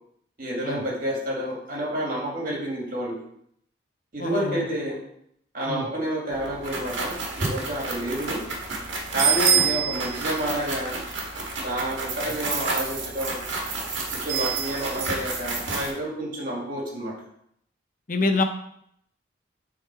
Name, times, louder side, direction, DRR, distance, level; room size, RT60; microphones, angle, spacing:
voice 1, 0.4-3.2 4.1-5.0 5.5-8.4 9.1-11.0 11.6-13.4 14.1-17.1, right 1 dB, 45° right, -4 dB, 2.2 m, -29 dB
voice 2, 4.2-4.7 5.7-5.9 18.1-18.4, left 2 dB, 45° left, 6 dB, 0.7 m, -25 dB
sound 1, 6.3-15.9, right 5 dB, 75° right, 1.5 m, -28 dB
7.4 x 3.8 x 4.5 m, 0.71 s
head